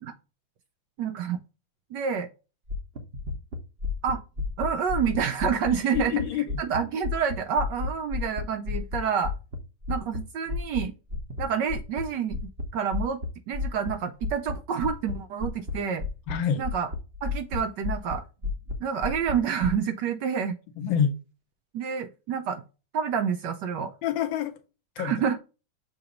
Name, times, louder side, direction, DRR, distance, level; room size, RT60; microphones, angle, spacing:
voice 1, 1.0-1.4 1.9-2.3 4.0-4.2 4.6-6.1 6.6-9.3 9.9-10.9 11.4-12.4 12.7-16.0 16.6-16.9 17.2-18.2 18.8-20.6 21.7-22.6 22.9-23.9 25.0-25.4, right 7 dB, 70° right, 1.1 m, -28 dB
sound 1, 2.7-6.8 7.0-10.2 10.5-10.8 11.1-11.4 11.7-12.0 12.3-12.7 12.9-13.3 13.5-13.9 14.2-14.5 14.8-15.2 15.4-15.7 16.0-16.3 16.6-17.6 17.8-18.2 18.4-18.7 19.0-19.7, left 4 dB, 40° right, 1.0 m, -31 dB
voice 2, 5.9-6.6 16.3-16.6 20.8-21.1 24.0-24.6 25.0-25.1, left 8 dB, 70° left, 1.5 m, -26 dB
6.7 x 2.9 x 5.0 m
omnidirectional pair, 2.3 m